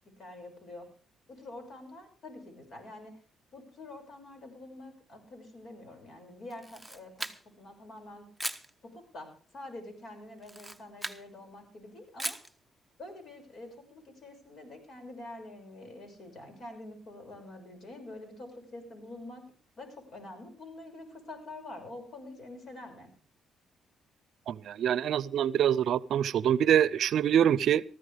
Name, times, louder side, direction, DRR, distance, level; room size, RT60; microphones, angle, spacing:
voice 1, 0.2-0.9 1.3-3.2 3.5-7.3 7.6-8.3 8.8-12.4 13.0-19.5 19.8-23.1, left 2 dB, 55° left, 5 dB, 6.3 m, -46 dB
Camera, 6.5-7.7 8.4-8.7 10.4-11.2 12.2-12.5, right 1 dB, ahead, 1.0 m, -38 dB
voice 2, 24.5-27.8, right 9 dB, 70° right, 19 dB, 0.6 m, -25 dB
19.0 x 14.5 x 3.5 m, 0.39 s
cardioid pair, 90°, 0 cm